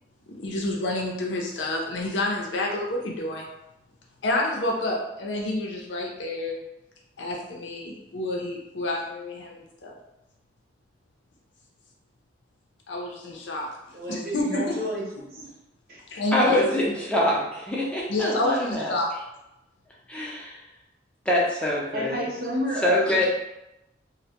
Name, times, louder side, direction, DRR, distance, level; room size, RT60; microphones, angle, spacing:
voice 1, 0.4-3.5 4.2-6.6 7.2-9.9 12.9-13.7 14.1-14.8 16.1-16.6 18.1-19.1, left 2 dB, 85° left, -1 dB, 0.5 m, -29 dB
voice 2, 13.9-15.0 15.3-15.4 15.9-16.0 21.9-23.0, equal, 55° right, -5 dB, 0.8 m, -30 dB
voice 3, 16.3-18.9 20.1-20.6 21.3-22.3 22.8-23.3, left 1 dB, 5° left, -4 dB, 0.5 m, -24 dB
2.1 x 2.1 x 2.8 m, 0.90 s
head